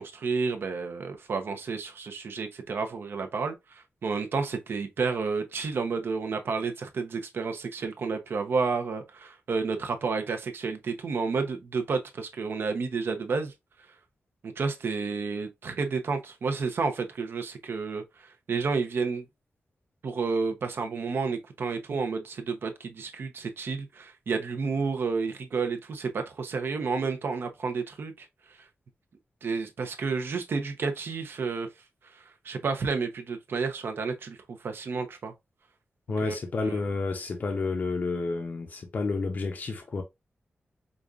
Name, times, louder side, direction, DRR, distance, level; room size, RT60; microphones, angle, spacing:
voice 1, 0.0-13.5 14.4-19.2 20.0-28.7 29.4-31.7 32.0-35.3 36.2-36.4 36.6-36.8, right 4 dB, 70° right, 0.7 m, -31 dB
voice 2, 36.1-40.0, left 3 dB, 50° left, 0.6 m, -30 dB
5.1 x 2.4 x 2.4 m
wide cardioid pair, 150°, 4 cm